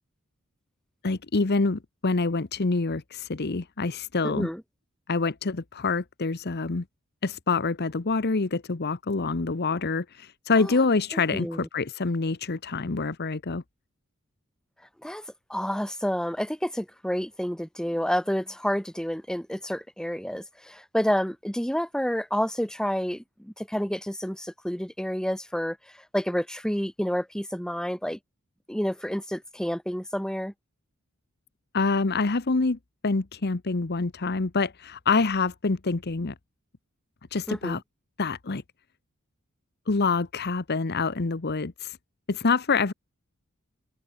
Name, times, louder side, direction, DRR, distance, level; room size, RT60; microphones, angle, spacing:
voice 1, 1.0-4.5 5.1-6.8 7.2-13.6 31.7-32.8 33.0-36.3 37.3-37.8 38.2-38.6 39.9-42.0 42.3-42.9, left 4 dB, 50° left, 0.9 m, -26 dB
voice 2, 4.2-4.6 10.6-10.7 11.1-11.7 15.0-15.2 15.5-25.8 26.1-28.2 28.7-30.5 37.5-37.8, equal, 5° left, 1.6 m, -29 dB
open air
head